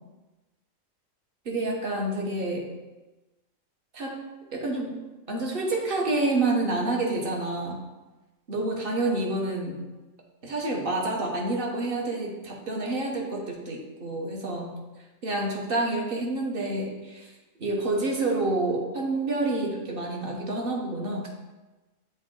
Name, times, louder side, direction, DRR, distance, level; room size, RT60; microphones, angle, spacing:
voice 1, 1.4-2.7 3.9-4.2 4.5-4.9 5.3-7.8 8.5-9.8 10.4-14.8 15.2-17.3 17.6-21.3, right 2 dB, 45° right, 0 dB, 1.1 m, -28 dB
7.0 x 4.0 x 3.7 m, 1.1 s
omnidirectional pair, 1.4 m